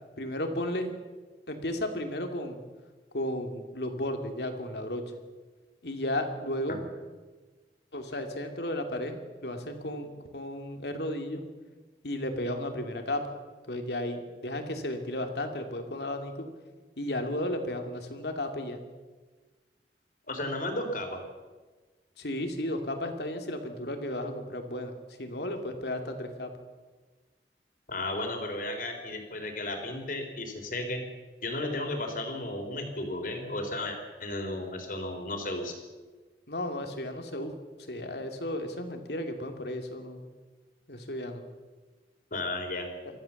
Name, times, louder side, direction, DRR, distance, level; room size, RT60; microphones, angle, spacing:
voice 1, 0.2-0.9 1.5-2.6 3.1-5.0 5.8-6.8 7.9-11.4 12.0-13.2 13.7-16.3 17.0-18.8 22.2-24.9 25.2-26.5 36.5-37.5 37.9-40.2 40.9-41.4, left 1 dB, 65° left, 5 dB, 2.7 m, -34 dB
voice 2, 20.3-21.2 27.9-31.0 31.4-35.7 42.3-42.9, left 2 dB, 50° left, 4 dB, 3.9 m, -34 dB
24.0 x 15.0 x 7.2 m, 1.3 s
head